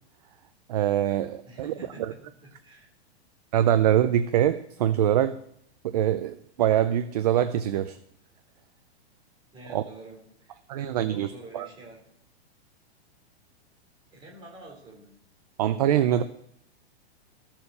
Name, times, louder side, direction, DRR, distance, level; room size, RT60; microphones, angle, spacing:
voice 1, 0.7-2.1 3.5-5.4 5.8-8.0 9.7-9.8 10.7-11.3 11.5-11.7 15.6-16.2, right 11 dB, 35° right, 11 dB, 0.5 m, -24 dB
voice 2, 1.4-2.1 2.4-2.9 9.5-12.0 14.1-15.1, right 2 dB, 15° right, 0 dB, 3.3 m, -47 dB
14.0 x 7.2 x 6.5 m, 0.71 s
supercardioid pair, 170°, 33 cm